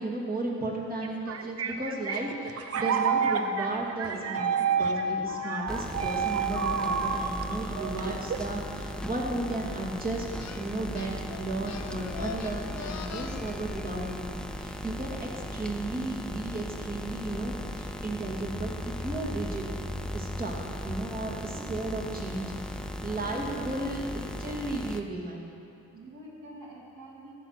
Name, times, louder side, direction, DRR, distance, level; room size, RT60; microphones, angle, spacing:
voice 1, 0.0-4.5 4.8-10.2 10.6-19.6 20.1-20.6 20.8-22.6 23.0-25.5, right 2 dB, 30° right, -2 dB, 2.4 m, -34 dB
sound 1, 1.0-8.6, right 5 dB, 50° right, 0.8 m, -29 dB
sound 2, 5.7-25.0, left 1 dB, 5° left, 0.5 m, -37 dB
sound 3, 10.4-10.6 10.9-13.5, left 7 dB, 65° left, 0.9 m, -41 dB
voice 2, 21.3-21.7 23.1-24.1 25.9-27.3, right 1 dB, 70° right, -3 dB, 2.6 m, -46 dB
14.0 x 6.5 x 5.9 m, 2.7 s
cardioid pair, 90°, 30 cm